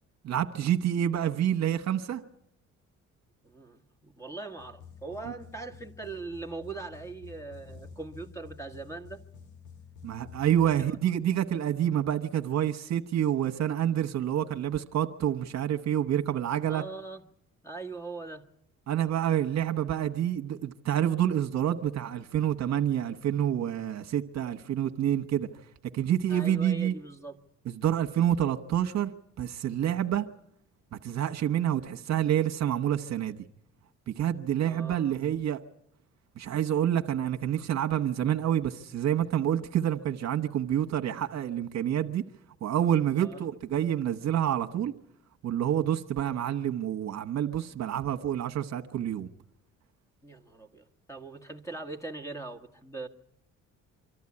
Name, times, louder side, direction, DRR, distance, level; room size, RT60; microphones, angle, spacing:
voice 1, 0.2-2.2 10.0-16.8 18.9-25.5 25.9-26.9 27.7-29.1 29.4-30.2 31.0-33.4 34.1-35.6 36.4-42.2 42.6-44.9 45.4-49.3, right 10 dB, 60° right, 1.2 m, -28 dB
voice 2, 3.4-9.2 10.7-11.0 16.7-17.2 17.6-18.4 26.3-27.4 34.6-35.0 43.1-43.5 50.2-53.1, right 3 dB, 10° left, 1.7 m, -41 dB
sound 1, 4.6-10.9, left 6 dB, 75° left, 1.8 m, -50 dB
25.0 x 13.0 x 9.8 m
cardioid pair, 90°, 30 cm